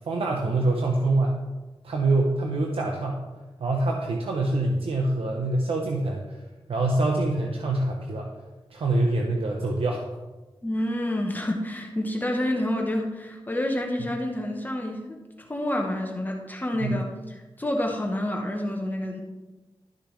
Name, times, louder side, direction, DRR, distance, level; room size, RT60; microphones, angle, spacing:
voice 1, 0.1-1.4 1.8-3.2 3.6-6.4 6.7-8.3 8.7-10.0 16.8-17.0, right 2 dB, 85° right, 0 dB, 0.9 m, -25 dB
voice 2, 10.6-19.2, left 1 dB, 20° left, 1 dB, 1.0 m, -28 dB
12.0 x 6.7 x 3.2 m, 1.1 s
wide cardioid pair, 110°, 9 cm